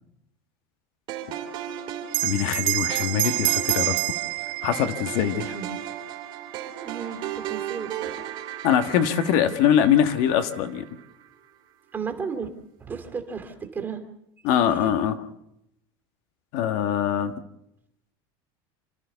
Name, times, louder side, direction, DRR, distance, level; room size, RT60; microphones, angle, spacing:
sound 1, 1.1-11.3, right 10 dB, 40° right, 2.9 m, -36 dB
Bell, 2.1-7.0, right 19 dB, 80° right, 1.4 m, -28 dB
voice 1, 2.2-4.0 4.6-5.5 8.6-10.8 14.4-15.2 16.5-17.3, left 9 dB, 55° left, 8 dB, 1.6 m, -23 dB
voice 2, 6.8-8.3 11.9-12.5 12.8-14.0 14.6-14.9, right 6 dB, 15° right, 5 dB, 2.4 m, -34 dB
28.0 x 13.5 x 6.9 m, 0.81 s
cardioid pair, 175°, 12 cm